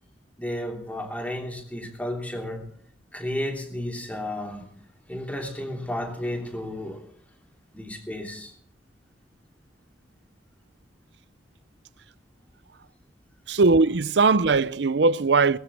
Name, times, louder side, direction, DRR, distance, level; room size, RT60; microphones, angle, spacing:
voice 1, 0.4-2.7 3.1-4.6 5.1-7.0 7.7-8.5, left 1 dB, 10° left, 3.1 m, -32 dB
voice 2, 13.5-15.6, right 3 dB, 70° right, 0.6 m, -20 dB
20.0 x 15.0 x 3.4 m
head